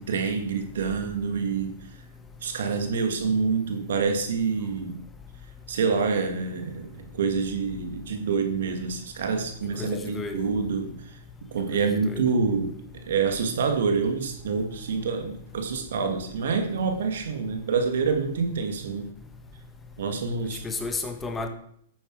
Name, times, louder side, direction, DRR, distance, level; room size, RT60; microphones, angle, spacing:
voice 1, 0.0-1.7 2.4-5.0 5.7-11.0 11.5-12.7 13.1-19.1 20.0-20.7, right 5 dB, 70° right, 2.2 m, -27 dB
voice 2, 9.8-10.5 11.7-12.3 20.6-21.5, left 3 dB, 15° left, 1.6 m, -33 dB
11.0 x 8.9 x 4.9 m
hypercardioid pair, 115°, 0 cm